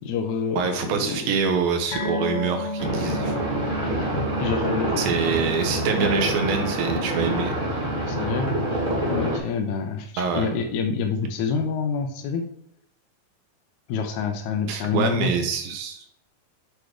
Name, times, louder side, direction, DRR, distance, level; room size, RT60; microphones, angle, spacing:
voice 1, 0.0-1.3 4.4-5.2 6.0-6.1 8.1-8.5 9.1-12.4 13.9-15.3, left 5 dB, 75° left, 4 dB, 1.8 m, -27 dB
voice 2, 0.6-3.5 5.0-7.6 10.2-10.5 14.7-16.0, right 5 dB, 80° right, 5 dB, 2.7 m, -25 dB
sound 1, 1.9-8.7 9.0-9.2 9.6-9.7, left 2 dB, 55° left, 2.0 m, -35 dB
sound 2, 2.8-9.4, right 1 dB, 25° right, 1.2 m, -26 dB
8.3 x 3.0 x 5.0 m, 0.74 s
omnidirectional pair, 4.2 m